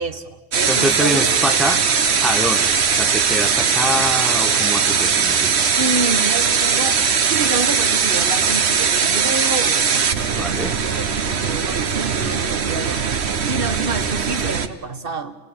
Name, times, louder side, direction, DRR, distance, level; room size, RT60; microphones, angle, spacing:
voice 1, 0.0-1.8 5.3-10.5 11.0-13.2 13.4-15.4, right 3 dB, 55° right, 7 dB, 1.7 m, -28 dB
sound 1, 0.5-14.7, right 6 dB, 70° right, 1.3 m, -19 dB
voice 2, 0.7-1.8 2.2-5.5 10.3-10.7, equal, ahead, 5 dB, 1.6 m, -25 dB
28.5 x 17.5 x 8.8 m, 1.2 s
omnidirectional pair, 1.1 m